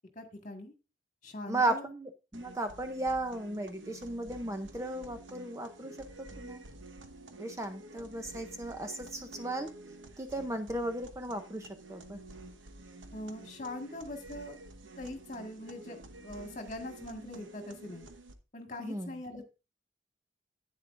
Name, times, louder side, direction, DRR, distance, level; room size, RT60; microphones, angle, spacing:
voice 1, 0.1-0.7 1.2-1.8 13.1-14.6 15.0-18.1 18.5-19.5, left 1 dB, 40° left, 4 dB, 1.7 m, -42 dB
voice 2, 1.5-6.6 7.4-9.7 10.2-12.2 18.8-19.2, right 2 dB, 15° right, 6 dB, 0.6 m, -35 dB
sound 1, 2.3-18.3, right 2 dB, 75° right, 1.1 m, -50 dB
10.5 x 9.0 x 2.5 m, 0.30 s
head